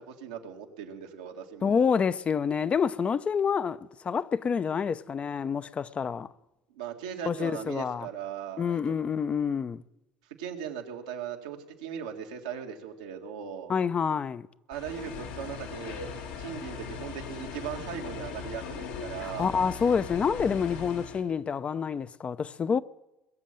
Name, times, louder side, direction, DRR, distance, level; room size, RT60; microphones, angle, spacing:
voice 1, 0.0-1.9 6.7-9.0 10.4-13.7 14.7-16.1 16.4-19.5, right 8 dB, 90° right, 1.9 m, -38 dB
voice 2, 1.6-6.3 7.2-8.1 8.6-9.8 13.7-14.5 19.2-22.8, left 6 dB, 35° left, 0.7 m, -28 dB
sound 1, 14.7-21.2, left 6 dB, 80° left, 2.5 m, -39 dB
21.0 x 7.5 x 9.0 m
hypercardioid pair, 70°, 3 cm